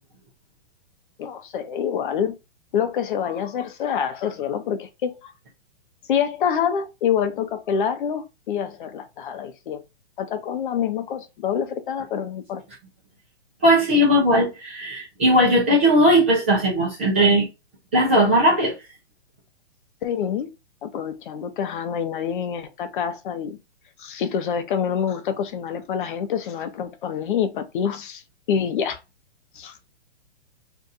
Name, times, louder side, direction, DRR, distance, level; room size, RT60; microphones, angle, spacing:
voice 1, 1.2-2.3 2.7-5.3 6.1-9.8 10.2-12.6 20.0-20.5 20.8-23.6 24.0-28.2 28.5-29.0 29.5-29.8, left 8 dB, 50° left, 0.7 m, -26 dB
voice 2, 13.6-17.5 17.9-18.8, equal, 10° right, 0.3 m, -18 dB
2.7 x 2.3 x 3.8 m
hypercardioid pair, 150°, 33 cm